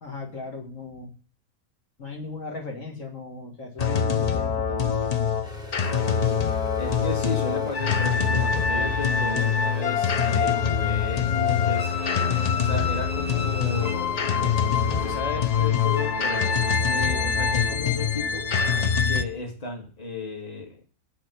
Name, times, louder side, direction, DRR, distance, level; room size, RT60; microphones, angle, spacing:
voice 1, 0.0-1.1 2.0-5.1, left 4 dB, 65° left, 1 dB, 2.1 m, -37 dB
sound 1, 3.8-19.2, left 6 dB, 45° left, 0.5 m, -24 dB
sound 2, 5.4-15.2, equal, 5° right, 1.2 m, -42 dB
voice 2, 6.8-11.9 12.6-14.1 15.0-18.4 19.1-20.8, left 3 dB, 25° left, 2 dB, 2.0 m, -34 dB
10.0 x 4.5 x 6.7 m, 0.40 s
omnidirectional pair, 1.5 m